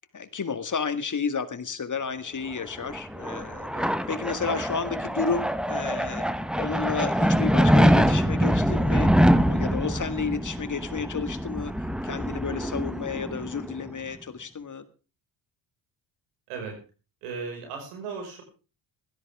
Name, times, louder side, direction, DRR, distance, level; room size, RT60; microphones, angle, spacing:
voice 1, 0.1-3.7 4.1-14.8, left 5 dB, 35° left, 11 dB, 2.0 m, -32 dB
sound 1, 2.6-13.9, equal, ahead, 1.1 m, -24 dB
voice 2, 9.9-10.3 16.5-16.8 17.2-18.4, right 5 dB, 90° right, 3 dB, 5.7 m, -37 dB
16.5 x 13.5 x 3.6 m, 0.34 s
supercardioid pair, 60°, 50 cm